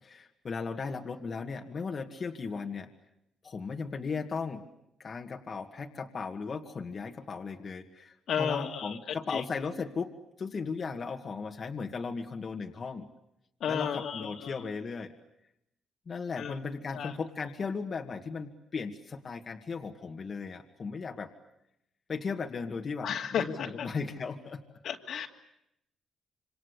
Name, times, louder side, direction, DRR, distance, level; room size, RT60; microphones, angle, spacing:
voice 1, 0.0-2.9 3.4-4.7 5.0-10.1 10.4-13.1 13.7-15.1 16.1-21.3 22.1-24.6, left 5 dB, 45° left, 3 dB, 2.1 m, -36 dB
voice 2, 8.3-9.0 9.3-9.4 13.6-14.6 16.4-16.5 16.9-17.1 23.0-23.9 24.8-25.3, left 7 dB, 70° left, 3 dB, 2.7 m, -33 dB
27.5 x 25.5 x 8.3 m, 0.81 s
cardioid pair, 90°, 0 cm